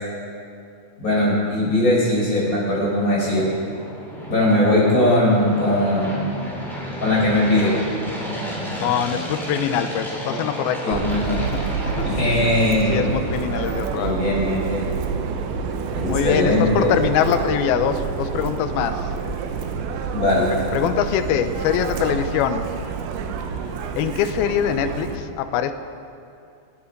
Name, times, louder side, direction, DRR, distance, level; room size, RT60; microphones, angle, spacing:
voice 1, 1.0-3.5 4.3-6.3 7.0-7.7 10.2-10.4 10.8-11.4 12.0-13.1 13.9-14.9 15.9-16.9 20.1-20.5, left 1 dB, 20° left, -5 dB, 5.0 m, -20 dB
sound 1, 1.9-14.2, equal, ahead, 2.4 m, -33 dB
voice 2, 8.8-11.1 11.4-12.2 12.9-14.4 16.1-19.1 20.7-22.7 24.0-25.7, left 9 dB, 80° left, 9 dB, 2.3 m, -23 dB
Subway metro underground, 10.9-25.2, right 5 dB, 85° right, 3.3 m, -28 dB
28.0 x 9.5 x 5.3 m, 2.5 s
omnidirectional pair, 5.0 m